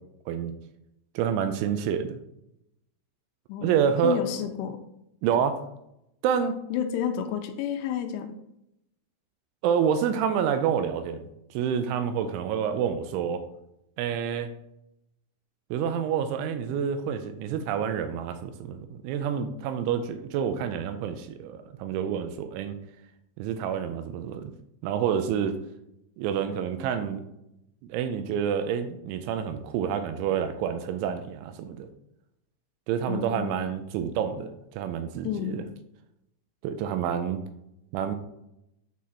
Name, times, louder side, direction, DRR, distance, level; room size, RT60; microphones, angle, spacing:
voice 1, 1.2-2.2 3.6-4.4 5.2-5.6 6.2-6.5 9.6-11.2 11.5-13.4 14.0-14.5 15.7-22.8 23.4-24.5 24.8-25.5 26.2-27.2 27.8-31.9 32.9-35.6 36.6-37.4 37.9-38.2, right 8 dB, 85° right, 9 dB, 2.9 m, -28 dB
voice 2, 3.5-4.8 6.7-8.3 33.1-33.7 35.2-35.6, left 9 dB, 85° left, 7 dB, 2.9 m, -31 dB
8.4 x 4.0 x 4.1 m, 0.81 s
omnidirectional pair, 5.6 m